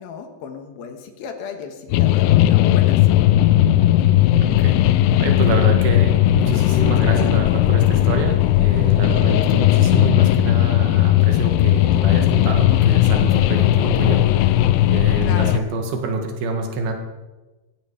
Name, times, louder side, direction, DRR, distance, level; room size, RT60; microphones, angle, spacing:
voice 1, 0.0-3.3 15.2-15.6, left 6 dB, 70° left, 6 dB, 3.0 m, -35 dB
sound 1, 1.9-15.6, left 13 dB, 90° left, 2.8 m, -16 dB
voice 2, 4.4-4.8 5.2-14.6 14.9-16.9, right 2 dB, 70° right, 4 dB, 3.7 m, -26 dB
17.0 x 15.5 x 4.9 m, 1.2 s
omnidirectional pair, 4.7 m